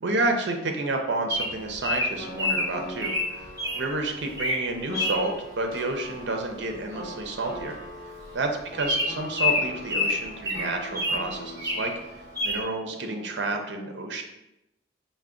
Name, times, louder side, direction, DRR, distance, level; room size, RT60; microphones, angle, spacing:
voice 1, 0.0-3.5 3.7-7.8 8.3-11.9 12.4-14.2, right 2 dB, 70° right, 3 dB, 0.6 m, -30 dB
Bird vocalization bird call bird song, 1.3-3.8 4.3-4.6 4.9-5.2 6.7-6.9 7.2-7.3 7.6-7.7 8.2-8.3 8.8-11.2 11.6-12.0 12.4-12.6, left 2 dB, 20° right, 0.8 m, -27 dB
sound 1, 2.2-13.6, equal, 50° left, 1.0 m, -42 dB
4.4 x 2.1 x 3.7 m, 0.88 s
head